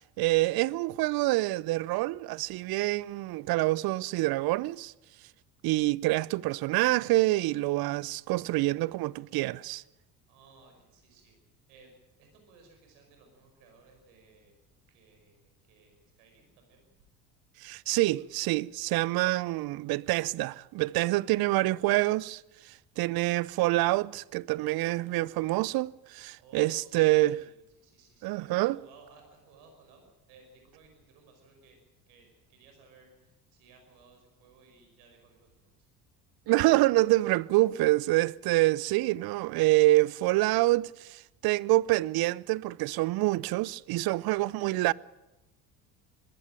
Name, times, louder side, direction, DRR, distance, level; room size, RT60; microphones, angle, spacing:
voice 1, 0.2-4.9 5.6-9.8 17.6-27.4 28.2-28.8 36.5-44.9, right 19 dB, 50° right, 0.6 m, -26 dB
voice 2, 10.3-11.3 11.7-11.9 12.2-14.6 14.9-16.9 17.8-18.7 26.4-31.8 32.1-35.9, right 4 dB, 70° right, 5.5 m, -59 dB
20.5 x 15.5 x 9.0 m
hypercardioid pair, 65°, 46 cm